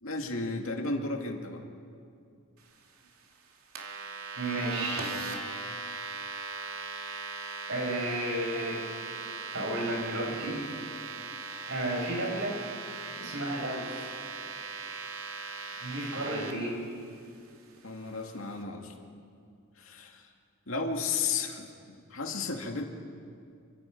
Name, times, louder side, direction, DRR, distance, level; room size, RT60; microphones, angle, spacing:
voice 1, 0.0-1.6 16.1-16.6 17.8-18.9 19.8-20.3 20.7-22.9, left 4 dB, 70° left, 3 dB, 2.4 m, -34 dB
sound 1, 3.7-16.5, right 4 dB, 85° right, 2.6 m, -39 dB
voice 2, 4.4-5.1 7.7-8.8 9.5-10.6 10.9-11.1 11.7-12.6 13.2-14.1 15.8-16.8, right 1 dB, 60° right, -1 dB, 6.4 m, -32 dB
28.5 x 24.5 x 5.3 m, 2.4 s
head